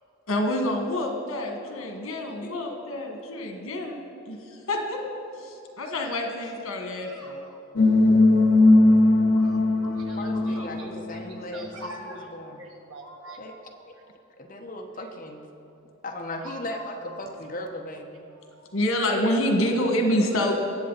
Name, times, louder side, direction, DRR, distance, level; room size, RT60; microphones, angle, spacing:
voice 1, 0.3-4.0 4.3-5.0 5.4-7.4 10.4-10.9 11.2-11.4 18.7-20.5, left 1 dB, 85° left, 3 dB, 1.6 m, -27 dB
voice 2, 2.3-2.8 10.2-12.6 13.4-13.5 14.4-15.5 16.0-18.2, left 1 dB, 40° left, 2 dB, 1.1 m, -37 dB
voice 3, 7.0-7.6 9.3-11.0 11.5-13.8 16.4-16.9 18.5-18.8, right 1 dB, 80° right, 1 dB, 1.7 m, -44 dB
sound 1, 7.8-11.7, left 2 dB, 60° left, 0.7 m, -19 dB
20.0 x 7.7 x 4.0 m, 2.8 s
head